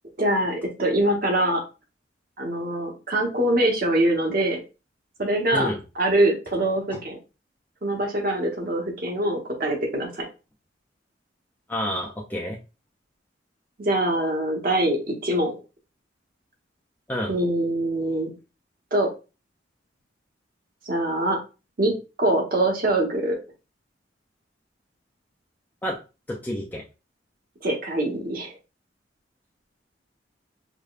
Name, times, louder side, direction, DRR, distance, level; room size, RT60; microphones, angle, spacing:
voice 1, 0.2-1.6 2.4-4.6 5.2-5.7 6.0-7.2 7.8-10.2 13.8-15.5 17.3-18.3 18.9-19.1 20.9-21.4 21.8-23.4 27.6-28.5, right 1 dB, 50° right, 1 dB, 1.0 m, -23 dB
voice 2, 11.7-12.6 17.1-17.3 25.8-26.0 26.3-26.8, left 1 dB, 10° left, -3 dB, 0.4 m, -29 dB
4.8 x 2.2 x 2.4 m, 0.30 s
head